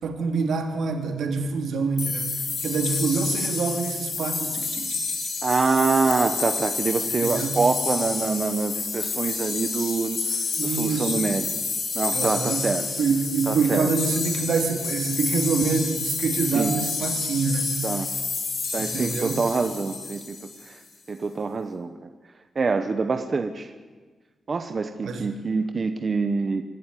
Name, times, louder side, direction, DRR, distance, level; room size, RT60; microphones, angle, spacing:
voice 1, 0.0-5.0 7.2-7.6 10.6-11.2 12.1-12.7 13.0-17.8 18.8-19.4 25.0-25.3, right 4 dB, 80° right, 5 dB, 2.8 m, -26 dB
sound 1, 2.0-20.7, left 4 dB, 75° left, 4.4 m, -29 dB
voice 2, 5.4-10.2 10.6-11.5 11.9-12.9 13.5-13.9 16.5-16.7 17.8-18.1 18.7-20.4 20.7-20.8 21.1-21.9 22.5-23.7 24.5-26.6, right 4 dB, 30° right, 7 dB, 1.0 m, -25 dB
26.0 x 12.5 x 9.8 m, 1.4 s
wide cardioid pair, 175°, 0 cm